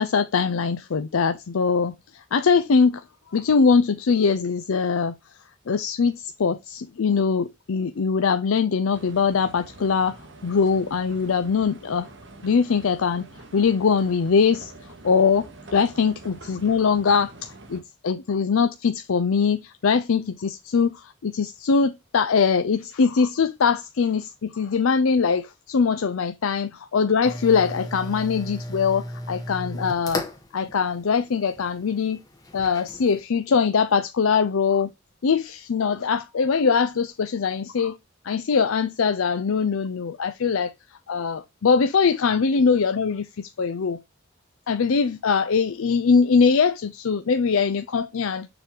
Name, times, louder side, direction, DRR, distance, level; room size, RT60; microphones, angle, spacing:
voice 1, 0.0-3.0 3.3-5.1 5.7-10.2 10.4-12.1 12.4-14.7 15.0-30.2 30.5-32.2 32.5-34.9 35.2-38.0 38.2-40.7 41.1-44.0 44.7-48.5, left 5 dB, 85° left, 0.5 m, -22 dB
sound 1, 8.9-17.8, right 2 dB, 60° right, 1.6 m, -45 dB
sound 2, 27.2-33.2, left 1 dB, 15° left, 1.3 m, -36 dB
6.8 x 3.8 x 4.6 m
head